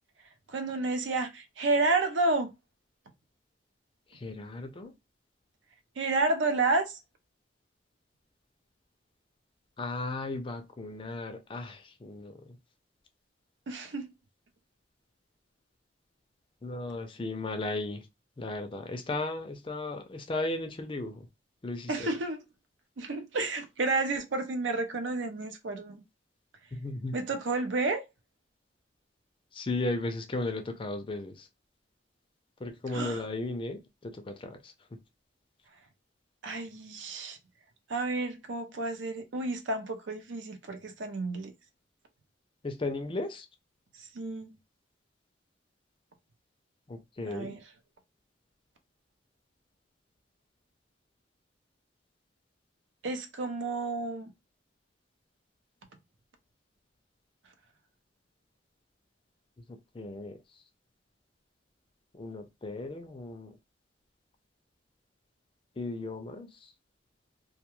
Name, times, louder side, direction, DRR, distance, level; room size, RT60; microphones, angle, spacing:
voice 1, 0.5-2.5 6.0-7.0 13.7-14.1 21.9-22.4 23.0-26.0 27.1-28.0 32.9-33.2 36.4-37.4 37.9-41.5 43.9-44.5 47.3-47.6 53.0-54.3, right 3 dB, 70° right, 0.5 m, -30 dB
voice 2, 4.1-4.9 9.8-12.6 16.6-18.1 18.4-21.3 21.6-22.1 26.7-27.2 29.5-31.5 32.6-35.0 42.6-43.5 46.9-47.6 59.9-60.6 62.1-63.5 65.8-66.7, left 2 dB, 25° left, 0.4 m, -36 dB
2.3 x 2.2 x 3.0 m
head